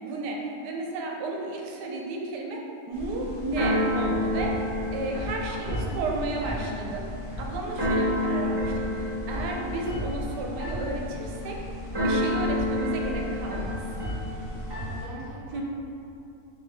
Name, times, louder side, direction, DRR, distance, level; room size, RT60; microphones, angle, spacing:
voice 1, 0.0-7.0 7.4-11.6 12.0-13.8 15.5-15.6, right 2 dB, 80° right, 0 dB, 1.1 m, -33 dB
Keyboard (musical), 2.9-15.0, left 1 dB, 20° right, 0.9 m, -29 dB
voice 2, 5.5-6.0 6.2-6.8 14.7-15.6, equal, 45° left, -10 dB, 1.2 m, -42 dB
3.9 x 3.6 x 3.3 m, 2.7 s
omnidirectional pair, 1.8 m